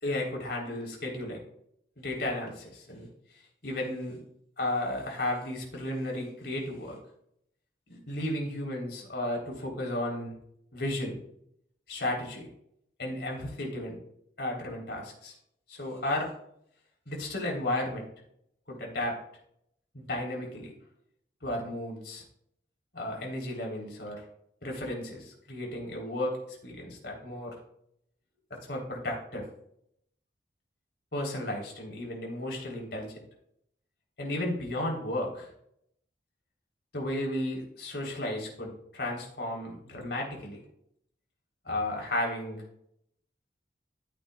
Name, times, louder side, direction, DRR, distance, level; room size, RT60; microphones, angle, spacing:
voice 1, 0.0-1.4 2.0-3.1 3.6-4.2 4.6-7.0 7.9-10.3 10.7-11.2 11.9-12.5 13.0-14.0 14.4-15.3 15.7-16.3 17.1-18.1 18.7-19.2 19.9-20.7 21.4-22.2 22.9-24.2 24.6-27.5 28.7-29.5 31.1-33.2 34.2-35.5 36.9-40.6 41.7-42.6, left 1 dB, 65° left, -1 dB, 3.7 m, -34 dB
14.0 x 8.5 x 2.4 m, 0.72 s
head